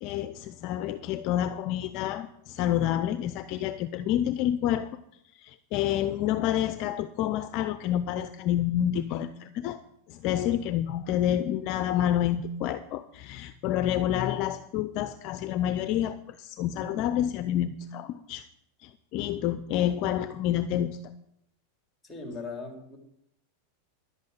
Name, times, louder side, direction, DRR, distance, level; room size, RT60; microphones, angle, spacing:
voice 1, 0.0-4.9 5.3-9.8 10.1-18.4 18.8-21.0, left 11 dB, 45° left, 12 dB, 0.6 m, -28 dB
voice 2, 22.0-23.0, left 3 dB, 10° left, 2 dB, 3.3 m, -39 dB
11.5 x 8.2 x 8.3 m, 0.78 s
supercardioid pair, 145°, 0 cm